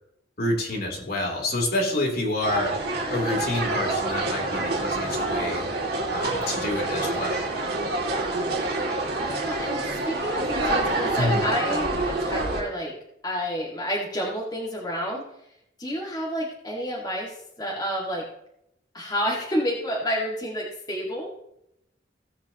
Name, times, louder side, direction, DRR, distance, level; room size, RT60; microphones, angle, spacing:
voice 1, 0.4-2.8 3.1-5.7 6.1-7.5 11.1-11.4, left 1 dB, 55° left, -1 dB, 3.3 m, -28 dB
sound 1, 2.4-12.6, right 2 dB, 55° right, 2.5 m, -27 dB
voice 2, 9.2-12.9 13.2-15.2 15.8-18.2 18.9-21.3, equal, 20° left, -4 dB, 2.0 m, -30 dB
17.0 x 8.0 x 3.0 m, 0.80 s
head